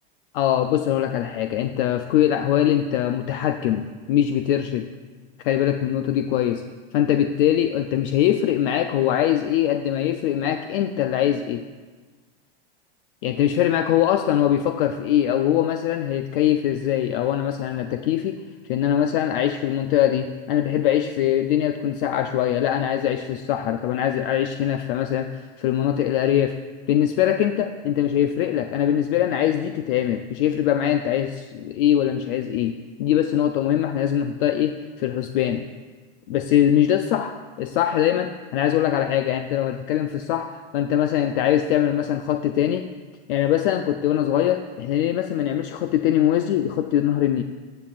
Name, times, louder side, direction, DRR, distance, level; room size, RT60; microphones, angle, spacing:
voice 1, 0.3-4.9 5.4-6.6 6.9-11.7 13.2-18.4 18.7-26.6 26.9-35.7 36.3-42.9 43.3-47.4, left 11 dB, 60° left, 8 dB, 0.5 m, -22 dB
14.5 x 8.7 x 2.5 m, 1.4 s
hypercardioid pair, 115°, 30 cm